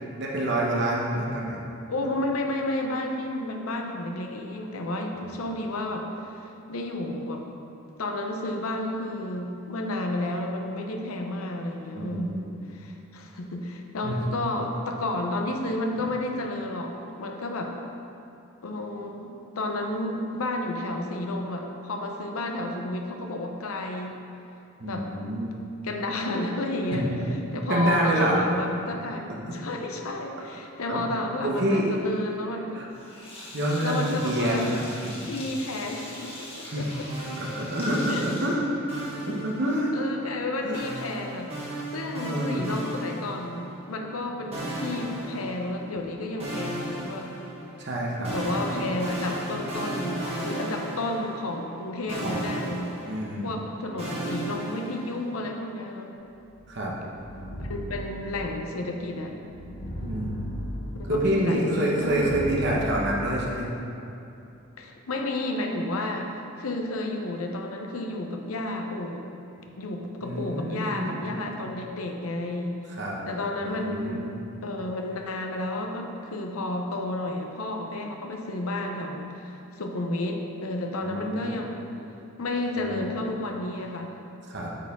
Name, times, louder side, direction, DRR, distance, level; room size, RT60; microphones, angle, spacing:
voice 1, 0.2-1.6 5.2-5.3 11.9-12.4 14.0-14.2 24.8-25.5 26.9-27.2 27.7-28.4 29.5-29.6 30.9-31.0 31.4-31.9 32.7-32.9 33.5-35.2 36.7-36.9 37.4-40.0 40.6-40.8 41.6-41.8 42.2-42.6 47.8-48.4 52.2-52.5 53.1-53.6 56.7-56.9 60.0-60.4 61.1-63.7 70.2-71.3 72.9-73.2 73.6-74.4 81.0-81.5 82.8-83.1 84.5-84.7, right 1 dB, 55° right, -3 dB, 1.0 m, -27 dB
voice 2, 1.9-7.4 8.0-12.4 12.7-17.7 18.6-24.2 24.8-25.1 25.8-27.1 27.5-29.2 29.5-32.9 33.8-34.7 35.3-37.1 38.1-38.2 39.9-41.5 41.9-47.3 47.8-47.9 48.3-52.9 53.4-56.1 57.7-59.3 61.0-62.3 64.8-69.2 69.8-72.8 73.3-74.2 74.6-81.9 82.4-84.2, left 2 dB, 90° left, 3 dB, 0.7 m, -31 dB
Sink (filling or washing), 32.9-39.3, left 1 dB, 30° left, 1.3 m, -42 dB
sound 1, 37.1-38.3 38.9-40.1 40.7-43.8 44.5-46.0 46.4-51.8 52.1-55.4, right 1 dB, 30° right, 1.4 m, -35 dB
sound 2, 56.5-62.9, equal, 45° left, 0.8 m, -37 dB
8.5 x 4.6 x 3.6 m, 2.8 s
head